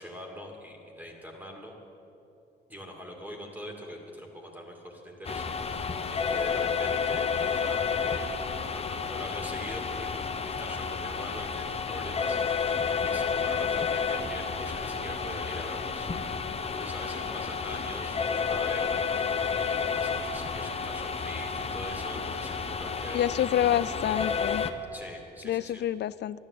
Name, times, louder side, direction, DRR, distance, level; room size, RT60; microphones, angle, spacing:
voice 1, 0.0-1.7 2.7-10.1 10.4-16.1 16.4-23.2 24.9-25.8, equal, 10° right, 0 dB, 2.5 m, -43 dB
sound 1, 5.2-24.7, left 5 dB, 30° left, 0.9 m, -30 dB
voice 2, 23.1-24.7 25.4-26.4, left 11 dB, 60° left, 19 dB, 0.4 m, -27 dB
12.5 x 11.0 x 8.5 m, 2.9 s
cardioid pair, 90°, 20 cm